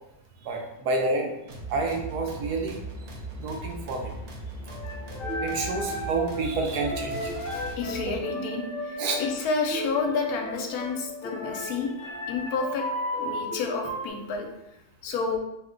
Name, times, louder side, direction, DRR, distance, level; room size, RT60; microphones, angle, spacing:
voice 1, 0.4-1.3 1.7-2.8 3.4-4.1 5.4-7.3 9.0-9.2, right 3 dB, 85° right, 2 dB, 1.2 m, -29 dB
sound 1, 1.5-8.2, right 1 dB, 65° right, 0.7 m, -39 dB
sound 2, 4.7-14.1, left 1 dB, 45° left, 0.9 m, -34 dB
voice 2, 7.5-12.9 13.2-14.5 15.0-15.4, left 4 dB, 80° left, 2 dB, 1.1 m, -30 dB
2.9 x 2.2 x 3.6 m, 0.85 s
omnidirectional pair, 1.6 m